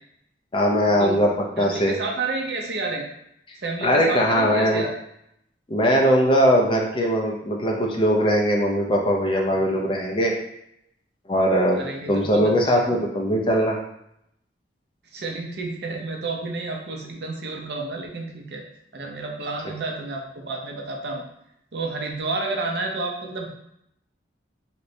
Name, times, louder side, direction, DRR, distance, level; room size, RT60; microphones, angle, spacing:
voice 1, 0.5-1.3 1.6-2.0 3.8-4.8 5.7-10.3 11.3-11.8 12.1-13.8, equal, 30° left, 0 dB, 0.5 m, -20 dB
voice 2, 1.6-3.0 3.6-5.0 11.7-13.0 15.1-18.6 18.9-21.2 21.7-23.5, right 3 dB, 60° right, 1 dB, 0.5 m, -30 dB
3.1 x 2.9 x 2.6 m, 0.76 s
head